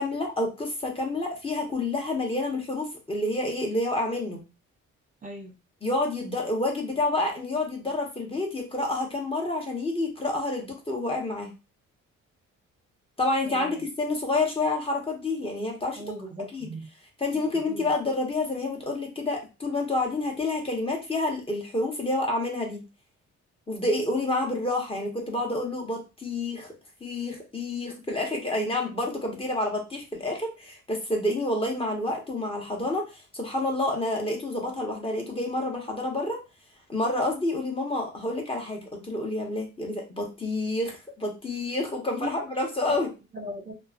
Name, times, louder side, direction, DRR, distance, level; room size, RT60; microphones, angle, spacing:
voice 1, 0.0-4.4 5.8-11.5 13.2-16.0 16.5-16.7 17.2-22.8 23.7-26.7 27.0-33.1 33.3-36.4 36.9-43.1, left 2 dB, 20° left, 1 dB, 0.9 m, -28 dB
voice 2, 5.2-5.5 13.5-13.8 16.0-16.9 17.3-17.9 42.2-42.3 42.9-43.0 43.3-43.7, right 1 dB, 25° right, 0 dB, 0.8 m, -38 dB
2.9 x 2.1 x 2.4 m, 0.29 s
cardioid pair, 90°, 30 cm